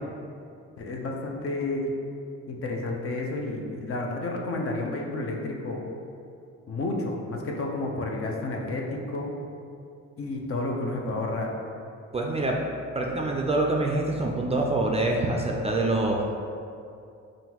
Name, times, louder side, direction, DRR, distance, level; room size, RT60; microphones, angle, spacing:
voice 1, 0.8-1.9 2.5-5.8 6.7-9.3 10.2-11.6, left 2 dB, 45° left, 0 dB, 0.7 m, -31 dB
voice 2, 12.1-12.6 12.9-16.2, right 2 dB, 20° right, -1 dB, 0.4 m, -25 dB
5.5 x 2.5 x 2.9 m, 2.5 s
cardioid pair, 90°, 30 cm